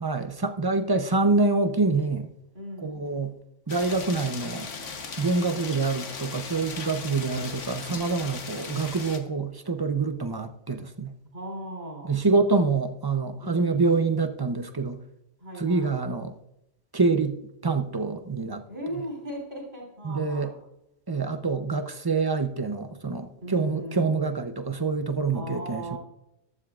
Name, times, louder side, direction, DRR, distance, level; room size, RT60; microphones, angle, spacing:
voice 1, 0.0-2.3 2.8-3.3 3.7-4.7 5.2-11.1 12.1-15.0 15.6-16.3 16.9-18.6 20.0-20.5 21.1-26.0, right 3 dB, 25° right, 7 dB, 0.6 m, -26 dB
voice 2, 2.5-3.1 11.3-12.3 13.4-14.0 15.4-16.0 18.7-20.6 23.4-24.1 25.3-26.0, equal, 60° right, -2 dB, 4.0 m, -37 dB
sound 1, 3.7-9.2, left 5 dB, 90° left, 1.5 m, -37 dB
14.5 x 12.5 x 2.5 m, 0.83 s
omnidirectional pair, 1.2 m